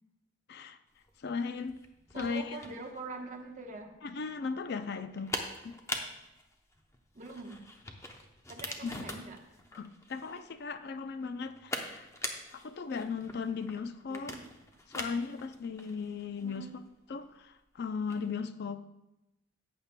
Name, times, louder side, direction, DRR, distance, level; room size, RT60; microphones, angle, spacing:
sound 1, 1.0-18.3, left 1 dB, 15° left, 0.7 m, -44 dB
voice 1, 1.2-1.8 2.1-2.6 4.0-5.4 5.6-5.8 8.8-9.1 9.7-12.1 12.5-14.3 14.9-16.8 17.1-18.9, left 5 dB, 55° left, 0.4 m, -37 dB
voice 2, 2.1-3.9 7.1-7.6 8.5-9.4 14.1-14.5 16.4-16.8, right 3 dB, 40° right, 1.1 m, -44 dB
14.0 x 8.6 x 2.2 m
head